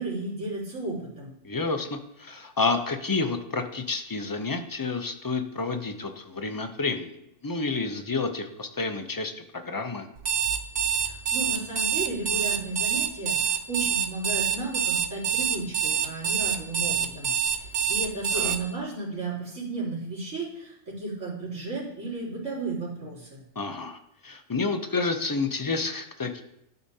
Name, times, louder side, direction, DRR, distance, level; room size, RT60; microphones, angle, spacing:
voice 1, 0.0-1.3 10.9-17.3 17.6-23.4, right 2 dB, 90° right, -12 dB, 3.9 m, -34 dB
voice 2, 1.4-7.2 7.4-10.1 18.3-18.5 23.6-26.4, left 3 dB, 30° left, 6 dB, 0.4 m, -30 dB
Alarm, 10.2-18.6, right 8 dB, 60° right, 1.0 m, -26 dB
13.0 x 4.9 x 2.8 m, 0.79 s
omnidirectional pair, 1.3 m